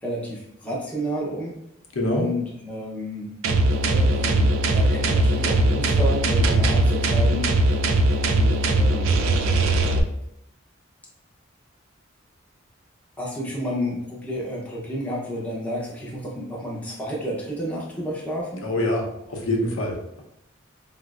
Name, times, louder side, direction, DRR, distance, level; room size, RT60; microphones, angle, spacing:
voice 1, 0.0-1.5 2.1-3.3 3.8-7.5 8.2-9.3 13.2-18.7, equal, 5° left, -5 dB, 0.5 m, -31 dB
voice 2, 2.0-2.3 18.6-19.0 19.3-20.2, left 1 dB, 85° left, 0 dB, 0.7 m, -24 dB
sound 1, 3.4-10.0, right 1 dB, 85° right, 0.4 m, -20 dB
4.3 x 2.0 x 2.3 m, 0.78 s
head